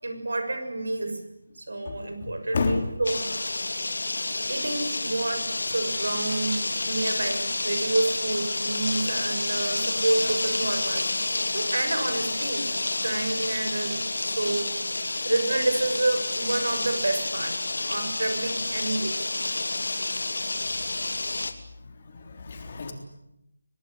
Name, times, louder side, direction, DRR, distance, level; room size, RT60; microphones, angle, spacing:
voice 1, 0.0-1.2 1.6-3.6 4.5-11.1 11.5-12.7 13.0-19.3, right 2 dB, 75° right, 8 dB, 6.7 m, -29 dB
voice 2, 1.9-2.9 21.8-22.9, left 4 dB, 35° left, 5 dB, 3.6 m, -31 dB
sound 1, 3.0-21.5, left 2 dB, 80° left, 2.9 m, -29 dB
24.5 x 19.0 x 9.8 m, 0.86 s
figure-of-eight pair, 175°, 0 cm